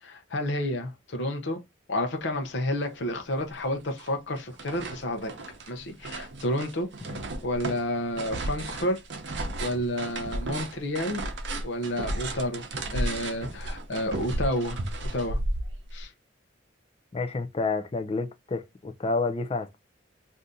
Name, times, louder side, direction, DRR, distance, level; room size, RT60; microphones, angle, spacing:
voice 1, 0.0-1.6 1.9-5.3 5.7-6.9 7.1-9.0 9.6-11.2 11.6-12.6 12.9-14.8 15.1-15.4 15.9-16.1, left 1 dB, 70° left, 0.7 m, -30 dB
sound 1, 2.9-3.0 3.4-4.1 4.4-16.0, right 1 dB, 65° right, 0.7 m, -34 dB
voice 2, 17.1-19.8, left 3 dB, 30° left, 0.4 m, -29 dB
2.6 x 2.6 x 3.5 m
head